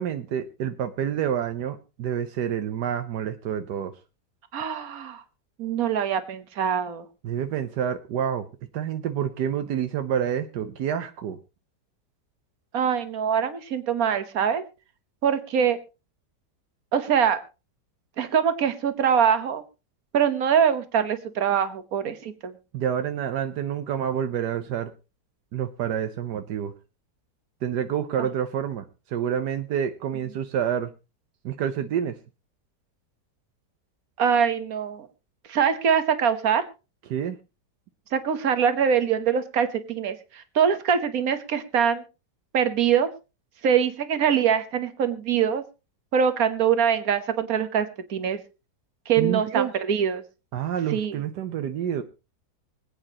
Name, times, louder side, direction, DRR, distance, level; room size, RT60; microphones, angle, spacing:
voice 1, 0.0-3.9 7.2-8.5 8.7-11.4 22.7-24.9 25.5-26.7 27.6-30.9 31.4-32.2 37.1-37.4 49.2-49.7 50.5-52.0, right 9 dB, 80° right, 9 dB, 1.4 m, -28 dB
voice 2, 4.5-5.2 5.6-7.0 12.7-14.6 15.2-15.8 16.9-17.4 18.2-19.6 20.1-22.5 34.2-35.1 35.5-36.6 38.1-42.0 42.5-43.1 43.6-45.6 46.1-48.4 49.1-50.2 50.9-51.2, right 7 dB, 60° right, 11 dB, 1.6 m, -23 dB
25.0 x 8.8 x 2.9 m, 0.29 s
omnidirectional pair, 1.8 m